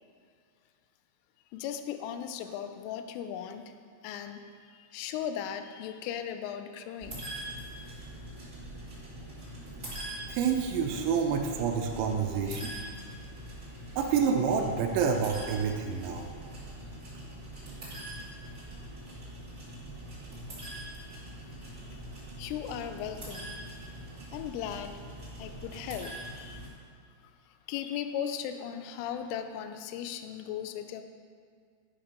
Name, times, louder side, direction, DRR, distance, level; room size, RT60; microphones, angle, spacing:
voice 1, 1.5-3.7 4.0-7.3 21.0-21.5 21.9-22.0 22.4-23.6 24.3-24.9 25.4-26.7 27.5-31.0, left 9 dB, 80° left, 8 dB, 2.9 m, -37 dB
sound 1, 7.0-26.7, right 1 dB, 30° right, 1.5 m, -43 dB
voice 2, 10.3-12.7 14.0-16.3, right 6 dB, 80° right, 1 dB, 2.8 m, -28 dB
11.5 x 5.8 x 5.2 m, 2.1 s
omnidirectional pair, 6.0 m